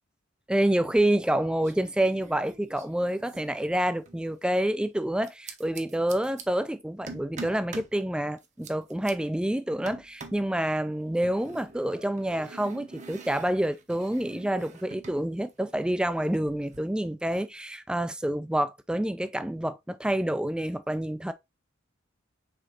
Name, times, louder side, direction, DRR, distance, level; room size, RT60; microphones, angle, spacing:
voice 1, 0.5-21.3, right 1 dB, 5° right, 0.4 m, -28 dB
sound 1, 0.8-1.3 1.6-4.2 5.2-6.4 7.1-8.0 8.4-9.1 9.9-10.5 11.2-15.2 15.5-16.8, right 4 dB, 35° right, 0.8 m, -46 dB
5.2 x 3.6 x 2.8 m
head